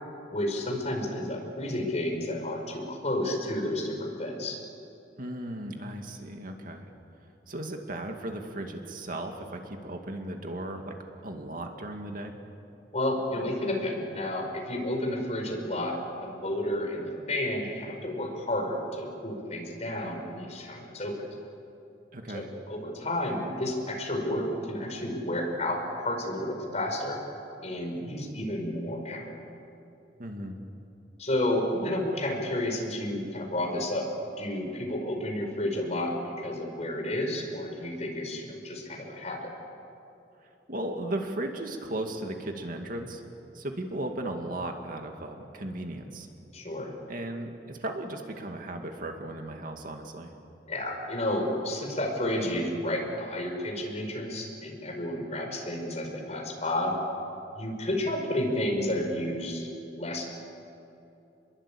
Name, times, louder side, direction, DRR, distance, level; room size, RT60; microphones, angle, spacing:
voice 1, 0.3-4.6 12.9-16.0 16.2-21.1 22.3-27.2 27.6-29.4 31.2-34.1 34.4-39.5 46.5-46.9 50.7-56.9 57.5-60.3, left 1 dB, 40° left, 2 dB, 5.2 m, -31 dB
voice 2, 5.2-6.9 7.5-11.0 11.2-12.4 22.1-22.5 30.2-30.6 40.7-43.2 43.5-46.3 47.1-50.3, right 1 dB, 50° right, 3 dB, 2.3 m, -36 dB
29.0 x 22.0 x 8.7 m, 2.8 s
head